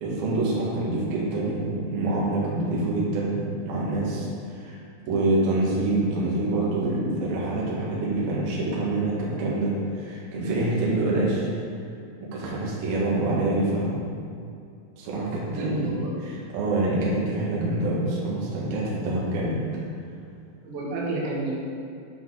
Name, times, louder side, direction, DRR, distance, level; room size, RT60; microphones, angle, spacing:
voice 1, 0.0-4.8 5.1-11.5 12.2-14.0 15.0-19.6, right 2 dB, 60° right, -6 dB, 2.9 m, -26 dB
voice 2, 15.5-16.1 20.6-21.5, right 2 dB, 85° right, -4 dB, 4.1 m, -30 dB
11.0 x 5.9 x 3.9 m, 2.4 s
omnidirectional pair, 5.9 m